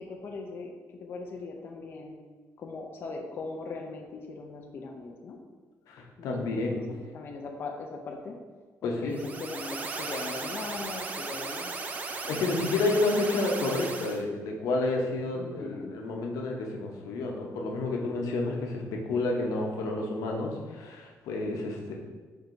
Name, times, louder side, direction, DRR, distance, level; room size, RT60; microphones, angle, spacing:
voice 1, 0.0-2.2 2.6-5.4 6.2-8.4 8.8-11.7 15.3-16.0, left 3 dB, 40° left, 1 dB, 0.4 m, -39 dB
voice 2, 5.9-6.8 8.8-9.2 12.1-21.9, left 2 dB, 90° left, 1 dB, 0.8 m, -30 dB
sound 1, 9.1-14.2, right 3 dB, 25° right, 0.4 m, -36 dB
4.6 x 4.4 x 2.6 m, 1.4 s
cardioid pair, 165°, 6 cm